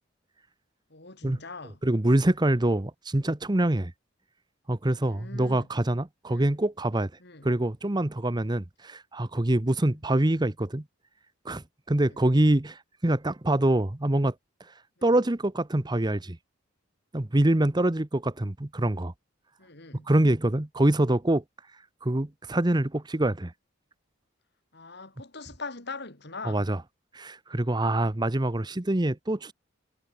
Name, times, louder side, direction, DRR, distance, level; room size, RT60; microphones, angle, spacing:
voice 1, 0.9-1.8 5.0-5.7 6.3-6.5 7.2-7.5 9.8-9.9 12.1-12.2 19.6-20.1 24.7-26.7, left 3 dB, 55° left, 3.9 m, -42 dB
voice 2, 1.8-3.9 4.7-7.1 7.4-10.8 11.4-14.3 15.0-16.4 17.1-19.1 20.1-21.4 22.0-23.5 26.4-26.8 27.1-29.5, right 1 dB, 20° right, 0.9 m, -25 dB
head